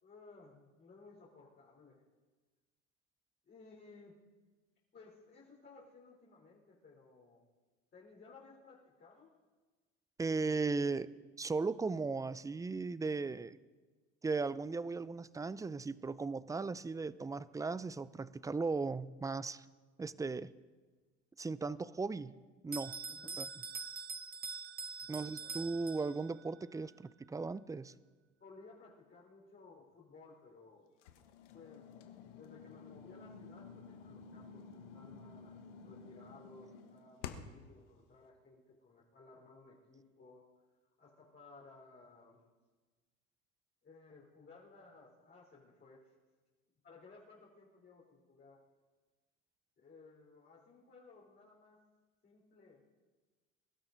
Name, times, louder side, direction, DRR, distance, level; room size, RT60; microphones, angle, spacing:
voice 1, 0.0-2.0 3.4-4.2 4.9-7.5 7.9-9.3 23.1-23.4 25.0-25.6 28.4-31.0 31.5-31.8 32.2-35.6 35.8-40.4 41.0-42.4 43.8-46.1 46.8-48.6 49.8-51.8 52.2-52.8, left 3 dB, 30° left, -4 dB, 3.7 m, -58 dB
voice 2, 10.2-11.1 11.4-13.6 14.2-19.7 20.0-20.5 21.4-22.3 22.6-23.0 23.4-23.5 25.1-27.9, right 4 dB, 10° right, 18 dB, 0.4 m, -37 dB
Bell, 22.7-26.4, right 5 dB, 25° right, 0.9 m, -44 dB
sound 1, 31.0-37.7, left 6 dB, 90° left, 1.2 m, -51 dB
22.5 x 12.5 x 3.9 m, 1.3 s
supercardioid pair, 85°, 35 cm